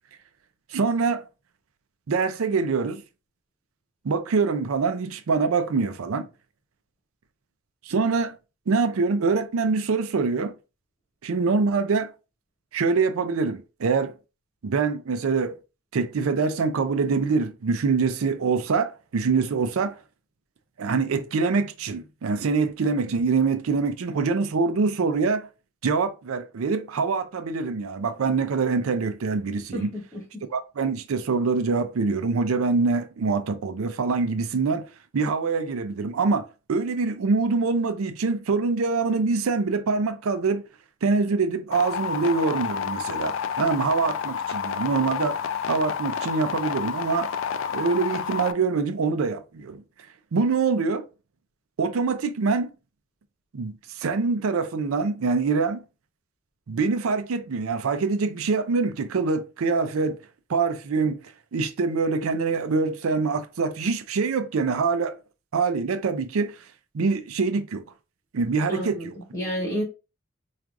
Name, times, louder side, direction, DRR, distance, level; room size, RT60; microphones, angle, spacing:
voice 1, 0.7-1.2 2.1-3.0 4.0-6.3 7.9-8.3 8.7-10.5 11.2-12.1 12.7-14.1 14.6-15.6 15.9-20.0 20.8-25.5 25.8-29.9 30.5-34.9 35.1-40.6 41.0-45.4 45.7-47.3 47.7-49.8 50.3-51.1 51.8-52.7 53.5-55.8 56.7-60.2 60.5-61.2 61.5-65.2 65.5-66.6 66.9-67.8 68.3-69.1, right 4 dB, 85° right, 0.5 m, -24 dB
voice 2, 29.7-30.2 68.7-69.8, equal, 20° left, 2.1 m, -31 dB
sound 1, 41.7-48.5, left 7 dB, 65° left, 0.3 m, -29 dB
4.6 x 2.4 x 2.5 m
head